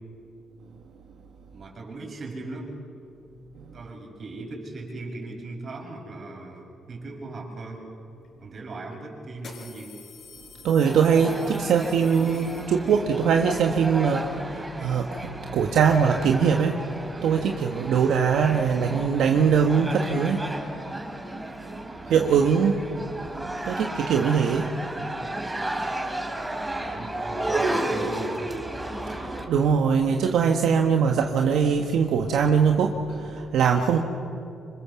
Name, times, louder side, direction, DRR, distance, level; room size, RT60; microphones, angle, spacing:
voice 1, 1.5-2.8 3.7-7.9 8.4-9.9 21.8-22.2 26.2-28.5, right 2 dB, 45° right, 0 dB, 6.6 m, -38 dB
sound 1, 8.2-8.3 9.3-13.1, left 5 dB, 60° left, 5.8 m, -47 dB
voice 2, 10.6-16.8 17.2-20.4 22.1-22.8 23.6-24.7 29.2-34.0, right 6 dB, 75° right, 3 dB, 1.4 m, -22 dB
sound 2, 10.8-29.4, right 1 dB, 15° right, 3.5 m, -33 dB
26.5 x 25.5 x 7.1 m, 2.6 s
cardioid pair, 90°, 0 cm